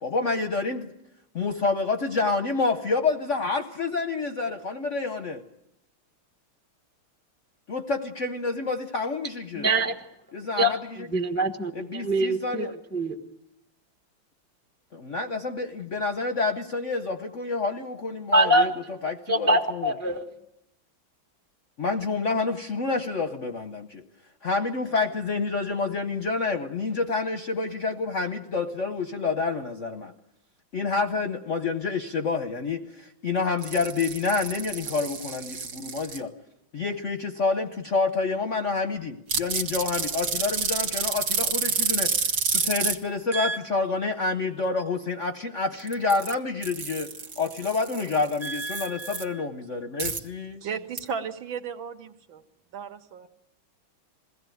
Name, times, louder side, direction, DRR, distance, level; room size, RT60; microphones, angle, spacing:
voice 1, 0.0-0.9 1.3-5.4 7.7-9.7 10.3-11.1 11.7-12.7 14.9-18.7 19.0-19.9 21.8-24.0 24.4-30.1 30.7-36.3 36.7-50.6, left 4 dB, 50° left, 7 dB, 0.9 m, -28 dB
voice 2, 9.6-9.9 10.6-10.8 11.1-13.2 18.3-18.7 19.3-20.3 43.3-43.6 48.4-49.2, right 1 dB, 10° left, 5 dB, 0.7 m, -24 dB
sound 1, 33.6-36.2 39.3-42.9 45.8-46.3 46.6-49.2 50.0-50.2 51.0-51.1, right 5 dB, 50° right, 1.8 m, -29 dB
voice 3, 50.6-52.4 52.7-53.3, right 6 dB, 70° right, 6 dB, 1.9 m, -35 dB
22.0 x 16.5 x 9.2 m, 0.83 s
omnidirectional pair, 2.3 m